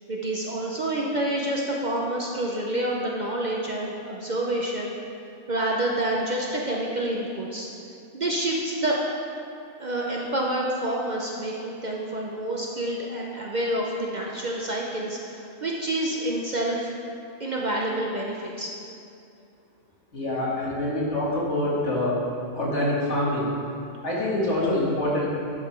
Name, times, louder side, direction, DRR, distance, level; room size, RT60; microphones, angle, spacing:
voice 1, 0.1-4.9 5.5-7.7 8.1-9.0 9.8-16.9 17.4-18.7, right 1 dB, 40° right, -2 dB, 0.8 m, -28 dB
voice 2, 20.1-22.2 22.5-23.5 24.0-25.3, left 1 dB, 65° left, -6 dB, 2.3 m, -25 dB
10.5 x 5.6 x 4.5 m, 2.6 s
omnidirectional pair, 1.3 m